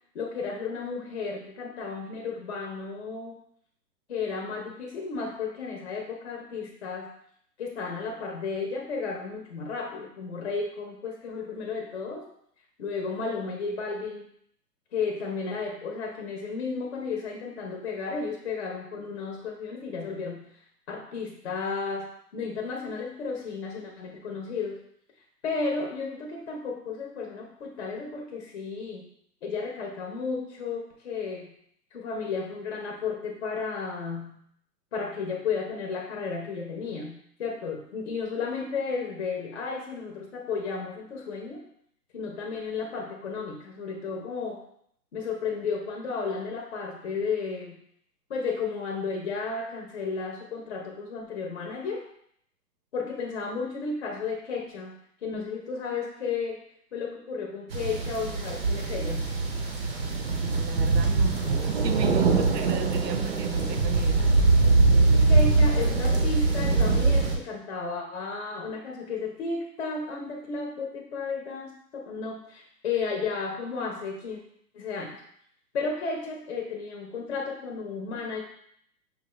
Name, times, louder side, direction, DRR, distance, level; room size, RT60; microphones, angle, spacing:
voice 1, 0.1-3.4 4.1-7.1 7.6-12.2 12.8-14.3 14.9-20.5 20.9-24.8 25.4-29.1 29.4-31.5 31.9-34.4 34.9-41.6 42.1-44.6 45.1-47.8 48.3-52.0 52.9-56.6 56.9-59.3 65.3-74.4 74.7-75.2 75.7-78.4, left 4 dB, 40° left, 0 dB, 0.8 m, -33 dB
sound 1, 57.7-67.4, right 3 dB, 35° right, 0.6 m, -23 dB
voice 2, 60.3-64.4, right 9 dB, 70° right, 8 dB, 0.7 m, -35 dB
5.4 x 2.4 x 3.1 m, 0.67 s
hypercardioid pair, 155°, 50 cm